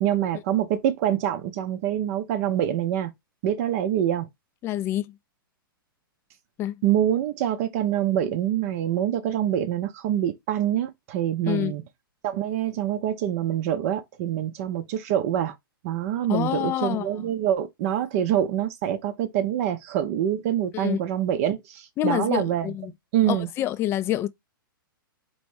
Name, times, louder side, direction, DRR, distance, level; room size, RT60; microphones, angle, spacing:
voice 1, 0.0-3.1 3.4-4.3 6.8-11.8 12.2-15.5 15.8-22.7 23.1-23.5, right 11 dB, 40° right, 0.5 m, -25 dB
voice 2, 4.6-5.1 6.6-6.8 11.5-11.7 16.3-17.3 20.7-21.0 22.0-22.9 23.3-24.3, left 13 dB, 20° left, 0.4 m, -27 dB
4.2 x 3.0 x 3.1 m
figure-of-eight pair, 110°, 12 cm